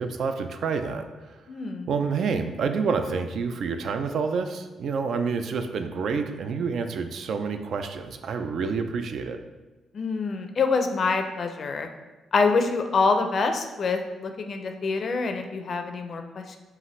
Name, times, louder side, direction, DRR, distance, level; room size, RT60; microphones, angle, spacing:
voice 1, 0.0-1.4 1.9-9.4, right 5 dB, 65° right, 7 dB, 0.3 m, -28 dB
voice 2, 1.5-1.9 9.9-11.9 12.3-16.6, left 4 dB, 45° left, 6 dB, 0.4 m, -26 dB
5.5 x 2.5 x 3.1 m, 1.2 s
cardioid pair, 120°, 0 cm